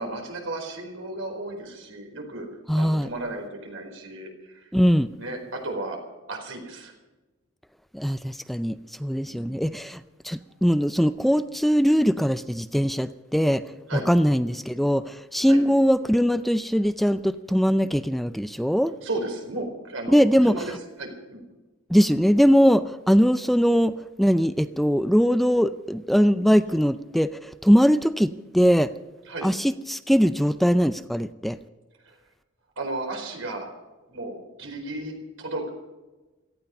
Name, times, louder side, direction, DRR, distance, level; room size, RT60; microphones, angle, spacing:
voice 1, 0.0-2.5 2.7-4.7 5.2-6.0 6.3-6.9 9.2-9.6 13.9-14.1 15.5-15.6 19.0-20.7 21.0-21.4 29.3-29.5 32.0-32.1 32.8-33.7 34.1-35.7, right 2 dB, 90° right, 3 dB, 4.7 m, -34 dB
voice 2, 2.7-3.1 4.7-5.1 7.9-13.6 13.9-18.9 20.1-20.6 21.9-28.9 29.4-31.6, equal, ahead, 12 dB, 0.4 m, -21 dB
17.5 x 14.5 x 5.5 m, 1.1 s
head